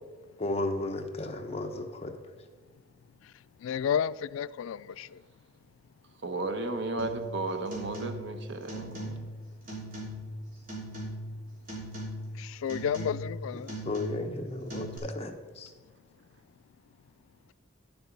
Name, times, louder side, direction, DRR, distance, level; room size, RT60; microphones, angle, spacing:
voice 1, 0.4-2.1 13.8-15.7, left 2 dB, 30° left, 0.9 m, -34 dB
voice 2, 3.6-5.1 12.4-13.7, left 8 dB, 90° left, 0.3 m, -31 dB
voice 3, 6.2-9.3, right 2 dB, 65° right, 1.1 m, -34 dB
sound 1, 7.0-7.3 7.7-8.4 8.7-9.4 9.7-10.3 10.7-11.4 11.7-12.3 12.7-13.4 13.7-14.4 14.7-15.0, right 1 dB, 45° right, 3.4 m, -39 dB
10.5 x 7.1 x 5.3 m
head